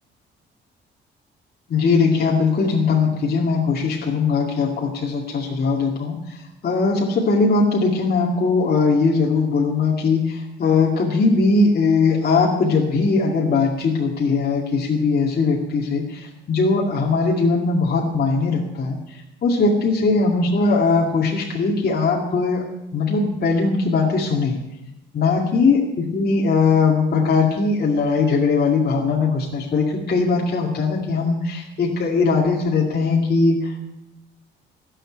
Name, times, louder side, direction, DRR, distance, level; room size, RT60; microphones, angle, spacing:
voice 1, 1.7-6.4 6.6-19.0 19.4-22.6 22.9-24.6 25.1-33.9, left 4 dB, 50° left, -1 dB, 2.3 m, -20 dB
16.0 x 7.4 x 8.9 m, 0.92 s
cardioid pair, 90°, 20 cm